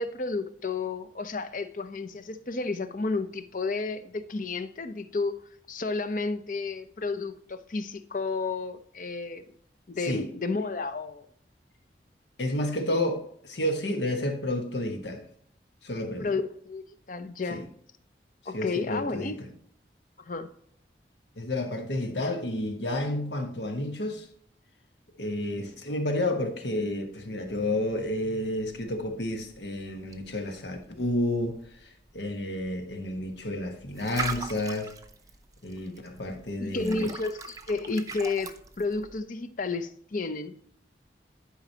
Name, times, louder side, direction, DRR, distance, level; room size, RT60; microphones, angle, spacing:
voice 1, 0.0-5.4 5.7-9.4 9.9-11.3 16.2-17.6 18.5-19.4 20.2-20.5 36.6-40.5, left 3 dB, 50° left, 0.6 m, -32 dB
voice 2, 12.4-15.2 15.8-16.3 17.5-17.6 18.5-19.3 21.4-24.3 25.2-31.6 32.1-34.9 35.6-37.1, left 1 dB, 85° left, 1.4 m, -30 dB
sound 1, 27.5-39.2, right 4 dB, 20° right, 0.6 m, -42 dB
11.0 x 5.1 x 2.8 m
head